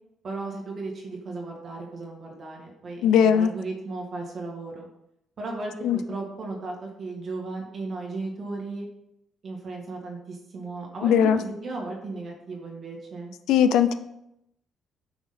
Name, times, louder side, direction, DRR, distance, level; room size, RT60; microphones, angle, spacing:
voice 1, 0.2-4.9 5.4-8.9 9.4-13.3, right 3 dB, 45° right, -1 dB, 1.8 m, -35 dB
voice 2, 3.0-3.5 5.8-6.0 11.0-11.4 13.5-13.9, left 8 dB, 90° left, 11 dB, 0.4 m, -19 dB
5.9 x 3.7 x 5.7 m, 0.83 s
cardioid pair, 110°, 0 cm